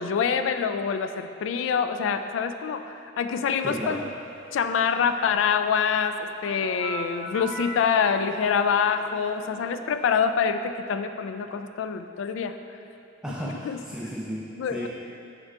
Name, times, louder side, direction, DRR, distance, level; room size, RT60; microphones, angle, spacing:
voice 1, 0.0-4.0 4.5-12.6 13.7-13.8 14.6-14.9, left 6 dB, 80° left, 9 dB, 0.3 m, -25 dB
voice 2, 3.6-4.1 13.2-14.9, equal, 5° right, -4 dB, 0.4 m, -34 dB
sound 1, 6.5-10.1, right 3 dB, 70° right, 0.6 m, -40 dB
7.9 x 5.4 x 2.4 m, 2.7 s
head